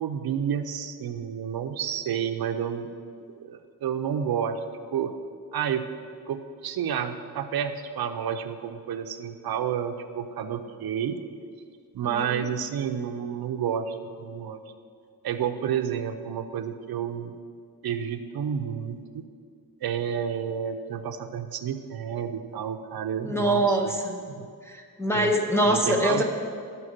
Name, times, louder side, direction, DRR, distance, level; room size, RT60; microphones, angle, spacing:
voice 1, 0.0-2.9 3.4-4.6 4.9-5.1 5.5-5.9 6.3-11.2 11.9-14.6 15.2-17.3 17.8-19.2 19.8-23.8 24.3-24.5 25.1-25.3 25.6-26.2, right 8 dB, 70° right, 8 dB, 0.5 m, -30 dB
voice 2, 12.0-12.5 23.2-24.2 24.6-26.2, right 1 dB, 5° left, 2 dB, 0.6 m, -24 dB
9.8 x 4.5 x 6.5 m, 2.2 s
wide cardioid pair, 170°, 38 cm